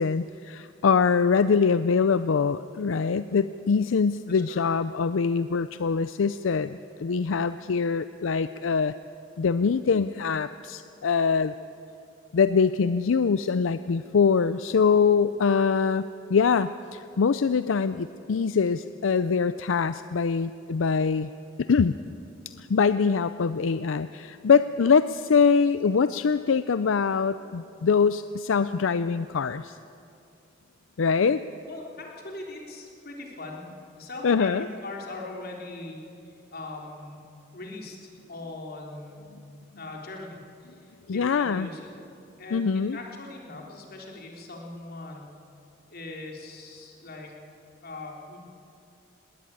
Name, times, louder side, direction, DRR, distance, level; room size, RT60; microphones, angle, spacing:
voice 1, 0.0-8.9 9.4-11.5 12.3-21.3 21.6-22.0 22.6-29.8 31.0-31.4 34.2-34.7 41.1-41.7 42.5-43.0, left 5 dB, 80° left, 13 dB, 0.5 m, -23 dB
voice 2, 4.3-4.7 31.7-33.7 34.0-37.2 37.5-39.3 39.8-40.8 41.1-41.9 42.4-45.3 45.9-47.4 47.8-48.4, left 2 dB, 55° left, 0 dB, 3.6 m, -40 dB
20.0 x 18.5 x 8.9 m, 2.6 s
head